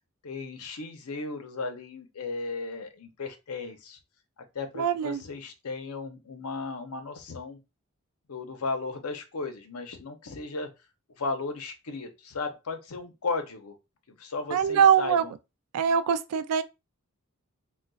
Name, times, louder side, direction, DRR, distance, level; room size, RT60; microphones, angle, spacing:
voice 1, 0.2-4.0 4.5-7.6 8.3-10.7 11.2-13.8 14.1-15.3, left 3 dB, 75° left, 0.7 m, -35 dB
voice 2, 4.8-5.2 14.5-15.2 15.7-16.6, right 7 dB, 80° right, 0.3 m, -23 dB
3.9 x 2.2 x 2.3 m
head